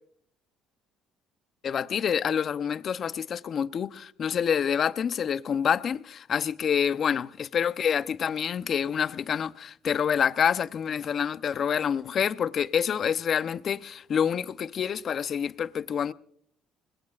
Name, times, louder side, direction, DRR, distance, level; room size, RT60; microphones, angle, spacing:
voice 1, 1.6-16.1, left 8 dB, 50° left, 0.8 m, -27 dB
26.0 x 21.5 x 2.5 m
cardioid pair, 95°, 0 cm